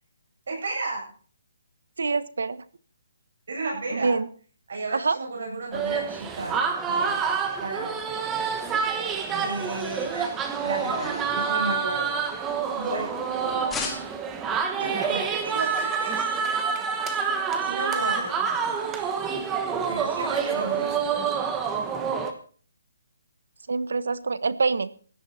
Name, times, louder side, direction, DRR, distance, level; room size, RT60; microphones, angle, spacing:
voice 1, 0.5-1.1 3.5-4.2 4.7-7.2 7.6-7.9 9.4-12.1 12.7-13.2 14.8-16.3 17.6-18.4 19.9-21.0, right 3 dB, 60° right, -1 dB, 8.0 m, -33 dB
voice 2, 2.0-2.6 3.9-4.3 4.9-5.2 23.7-24.9, right 4 dB, 80° right, 15 dB, 1.2 m, -25 dB
sound 1, 5.7-22.3, right 6 dB, 10° right, 1.1 m, -27 dB
sound 2, 6.3-13.3 13.7-14.4, left 4 dB, 5° left, 1.7 m, -42 dB
16.5 x 12.0 x 4.3 m, 0.42 s
hypercardioid pair, 175°, 0 cm